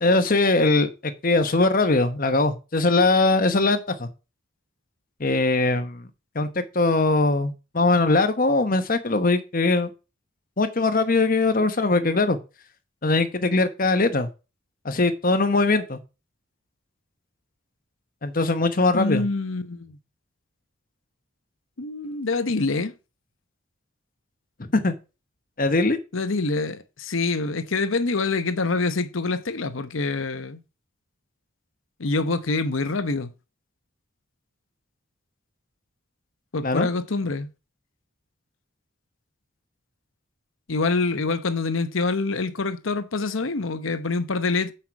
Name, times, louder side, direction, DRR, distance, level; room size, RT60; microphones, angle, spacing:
voice 1, 0.0-4.1 5.2-6.0 6.3-9.9 10.6-12.4 13.0-14.3 14.8-16.0 18.2-19.2 24.7-24.9 25.6-26.0 36.6-36.9, left 3 dB, 45° left, 1.1 m, -21 dB
voice 2, 18.9-20.0 21.8-22.9 26.1-30.6 32.0-33.3 36.5-37.5 40.7-44.7, left 3 dB, 75° left, 0.9 m, -26 dB
7.7 x 5.7 x 4.6 m
head